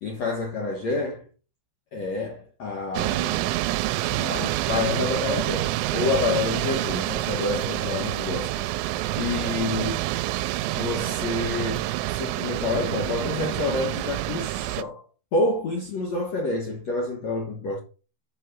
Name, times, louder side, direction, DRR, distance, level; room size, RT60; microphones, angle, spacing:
voice 1, 0.0-1.2 1.9-3.5 4.1-8.6 9.2-10.0 10.8-15.0 15.3-17.8, left 3 dB, 80° left, 1.5 m, -28 dB
sound 1, 3.0-14.8, right 16 dB, 85° right, 2.9 m, -27 dB
7.8 x 5.9 x 6.3 m
omnidirectional pair, 5.7 m